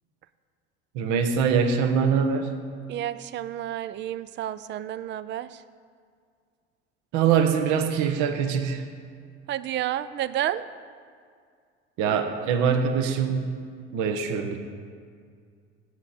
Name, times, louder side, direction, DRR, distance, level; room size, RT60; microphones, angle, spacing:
voice 1, 0.9-2.6 7.1-8.9 12.0-13.6 13.9-14.6, right 6 dB, 60° right, 7 dB, 1.2 m, -23 dB
voice 2, 2.9-5.6 9.5-10.7, right 12 dB, 35° right, 16 dB, 0.5 m, -30 dB
17.0 x 8.2 x 4.3 m, 2.1 s
hypercardioid pair, 70°, 33 cm